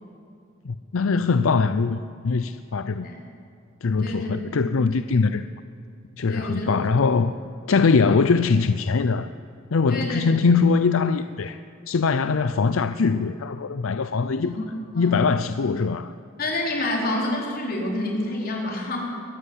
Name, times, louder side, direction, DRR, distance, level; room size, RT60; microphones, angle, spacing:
voice 1, 0.6-3.1 3.8-5.5 6.2-7.3 7.7-9.3 9.7-11.6 11.9-14.6 14.9-16.1, left 4 dB, 75° left, 0.5 m, -22 dB
voice 2, 4.0-4.3 6.3-6.7 7.0-7.1 9.9-10.5 14.4-14.7 14.9-15.3 16.4-19.1, left 1 dB, 50° left, 4.7 m, -28 dB
22.0 x 14.0 x 9.8 m
head